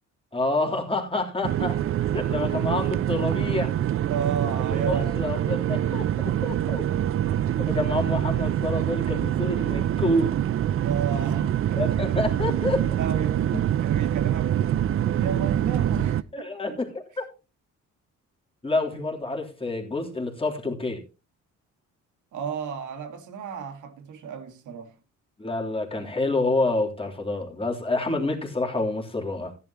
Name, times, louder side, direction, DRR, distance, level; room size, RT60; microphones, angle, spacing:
voice 1, 0.3-3.7 4.7-6.9 7.6-10.3 11.8-12.8 13.5-13.6 16.3-17.2 18.6-21.0 25.4-29.6, left 2 dB, 20° left, 3.3 m, -28 dB
sound 1, 1.4-16.2, right 11 dB, 45° right, 0.5 m, -25 dB
voice 2, 4.1-5.9 10.8-11.9 12.9-16.8 22.3-25.0, right 6 dB, 75° right, 2.0 m, -33 dB
14.5 x 11.0 x 3.0 m
cardioid pair, 90°, 30 cm